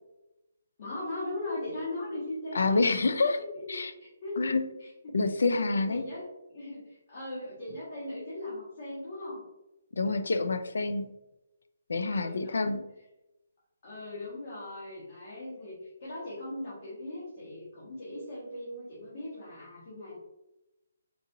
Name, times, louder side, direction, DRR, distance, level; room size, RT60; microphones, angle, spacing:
voice 1, 0.8-2.8 3.7-4.5 4.8-5.2 5.5-5.6 5.9-9.4 12.0-12.8 13.8-20.2, left 1 dB, 40° left, -8 dB, 1.3 m, -39 dB
voice 2, 2.5-3.4 3.7-3.9 4.4-4.6 5.1-6.1 9.9-11.1 11.9-12.8, left 3 dB, 75° left, 10 dB, 0.4 m, -27 dB
3.9 x 2.6 x 2.7 m, 0.93 s
hypercardioid pair, 175°, 0 cm